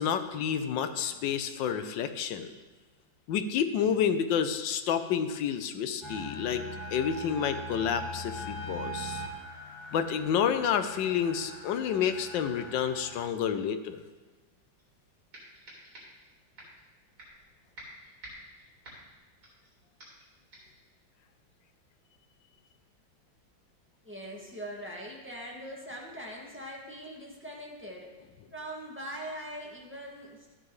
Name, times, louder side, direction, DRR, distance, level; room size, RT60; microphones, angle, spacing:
voice 1, 0.0-2.5 3.3-6.6 6.9-9.2 9.9-14.0, left 8 dB, 75° left, 9 dB, 1.3 m, -29 dB
sound 1, 6.0-13.3, equal, 15° left, 1.2 m, -41 dB
sound 2, 14.8-14.9 15.3-16.3 16.6-16.8 17.2-17.5 17.8-19.7 20.0-20.3 20.5-20.8, right 1 dB, 55° right, 4.1 m, -49 dB
voice 2, 24.0-28.1 28.5-30.6, equal, 5° right, -4 dB, 1.7 m, -42 dB
13.0 x 10.0 x 3.1 m, 1.3 s
omnidirectional pair, 2.1 m